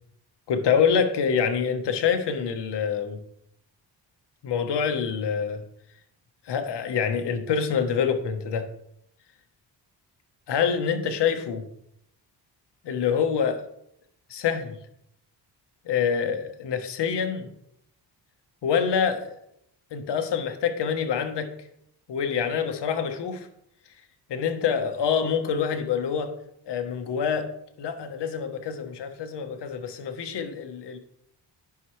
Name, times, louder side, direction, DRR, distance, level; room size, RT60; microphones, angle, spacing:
voice 1, 0.5-3.2 4.4-5.6 6.5-8.7 10.5-11.7 12.8-13.6 14.3-14.8 15.8-17.5 18.6-19.4 19.9-21.5 22.1-23.5 24.3-26.3 26.7-27.5 27.8-31.0, left 7 dB, 70° left, 7 dB, 1.2 m, -26 dB
11.0 x 5.8 x 3.2 m, 0.75 s
cardioid pair, 85°, 42 cm